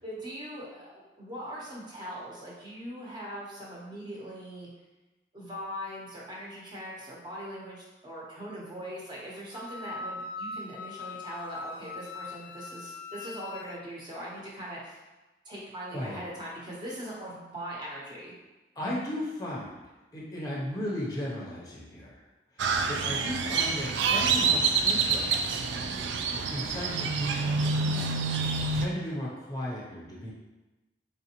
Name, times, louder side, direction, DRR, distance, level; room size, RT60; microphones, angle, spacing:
voice 1, 0.0-4.7 5.3-15.0 15.4-18.3, equal, 25° right, -5 dB, 0.9 m, -41 dB
Wind instrument woodwind instrument, 9.5-13.8, left 3 dB, 90° left, 0.3 m, -41 dB
voice 2, 18.8-19.8 20.1-22.2 22.5-25.6 26.5-30.3, left 1 dB, 20° left, -5 dB, 0.6 m, -36 dB
Crow, 22.6-28.9, right 4 dB, 85° right, 0.4 m, -27 dB
3.7 x 3.4 x 2.9 m, 1.1 s
head